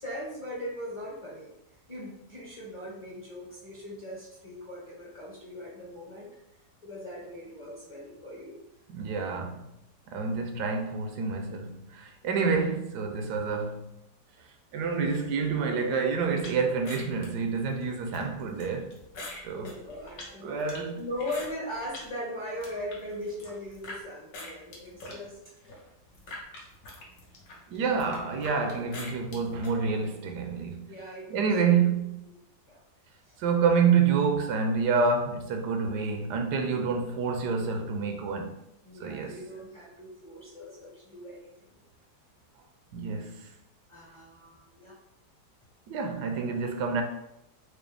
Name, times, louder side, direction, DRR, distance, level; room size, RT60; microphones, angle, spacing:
voice 1, 0.0-1.5 1.9-6.3 6.8-8.6 12.2-12.5 19.5-20.5 21.0-25.4 30.9-31.7 32.7-32.8 33.2-33.3 38.8-41.8 43.9-44.9, left 1 dB, 25° left, 0.7 m, -39 dB
voice 2, 8.9-9.6 10.1-13.9 14.7-19.0 19.4-19.7 20.4-21.0 27.7-30.9 31.3-32.2 33.4-38.6 39.0-39.4 42.9-43.5 45.9-47.0, right 5 dB, 80° right, 1.2 m, -28 dB
sound 1, 16.4-22.1 22.5-24.0 24.3-29.7, left 2 dB, 65° left, 1.3 m, -44 dB
4.7 x 2.1 x 3.3 m
omnidirectional pair, 1.8 m